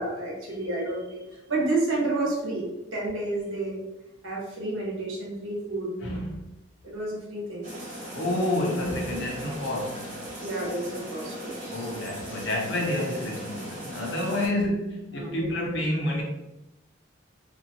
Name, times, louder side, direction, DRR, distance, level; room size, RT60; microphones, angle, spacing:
voice 1, 0.0-3.8 4.2-5.9 6.8-7.7 10.4-11.6 14.4-14.7 15.1-15.5, right 2 dB, 85° right, 1.0 m, -30 dB
voice 2, 6.0-6.5 8.1-10.1 11.7-16.2, left 1 dB, 65° left, 0.7 m, -29 dB
sound 1, 7.6-14.5, right 1 dB, 40° right, 1.2 m, -38 dB
2.7 x 2.3 x 2.8 m
head